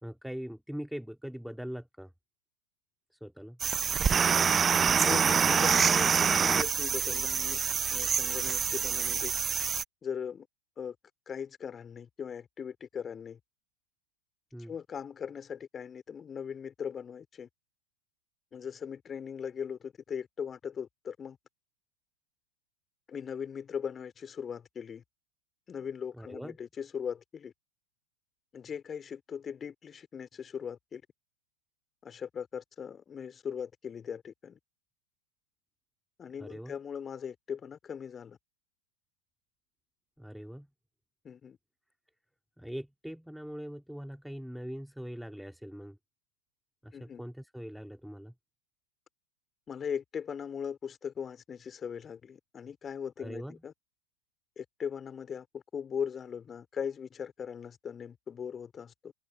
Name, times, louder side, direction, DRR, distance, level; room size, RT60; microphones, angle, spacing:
voice 1, 0.0-2.1 3.2-3.6 14.5-14.7 26.1-26.6 36.4-36.7 40.2-40.7 42.6-46.0 46.8-48.3 53.2-53.6, equal, ahead, 2.6 m, -42 dB
sound 1, 3.6-9.8, right 6 dB, 20° right, 0.4 m, -26 dB
voice 2, 5.0-7.6 7.9-9.3 10.0-10.5 10.8-11.0 11.3-13.4 14.7-17.5 18.5-21.4 23.1-25.0 25.7-27.5 28.5-31.0 32.0-34.6 36.2-38.4 41.2-41.6 46.9-47.2 49.7-53.7 54.6-59.1, left 7 dB, 20° left, 2.6 m, -39 dB
figure-of-eight pair, 90°, 0 cm